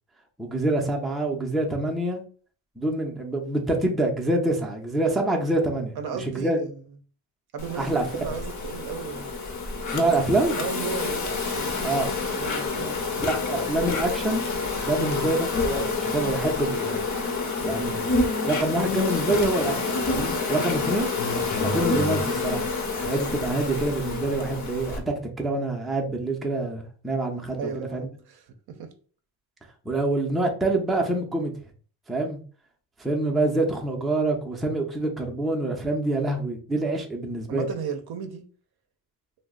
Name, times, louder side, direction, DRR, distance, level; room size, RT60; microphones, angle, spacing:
voice 1, 0.4-2.2 2.8-6.6 7.8-8.0 9.9-10.6 11.8-12.1 13.3-14.4 14.8-17.0 17.6-18.1 18.4-21.1 21.6-22.7 23.0-28.1 29.9-31.5 32.1-32.4 33.0-37.7, right 2 dB, ahead, 0.5 m, -26 dB
voice 2, 6.0-6.8 7.5-9.5 10.6-11.9 12.2-13.0 14.9-15.2 20.5-20.7 27.6-28.9 37.5-38.4, right 6 dB, 55° right, 0.6 m, -35 dB
Insect, 7.6-25.0, left 4 dB, 40° left, 0.7 m, -28 dB
2.4 x 2.0 x 3.6 m
cardioid pair, 90°, 47 cm